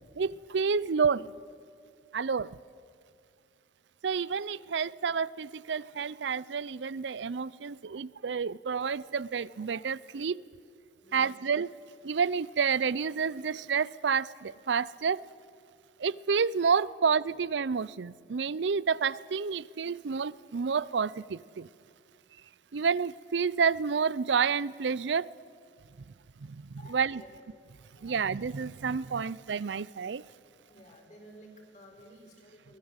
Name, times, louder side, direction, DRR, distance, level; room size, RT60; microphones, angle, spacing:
voice 1, 0.2-1.3 2.1-2.6 4.0-10.4 11.1-11.7 12.0-15.2 16.0-21.7 22.7-25.3 26.4-27.2 28.0-30.2, right 6 dB, 75° right, 0.5 m, -29 dB
voice 2, 11.0-11.4 17.2-17.3 26.8-27.3 27.6-28.2 30.6-32.8, equal, 40° left, 5.1 m, -54 dB
23.5 x 20.0 x 8.1 m
head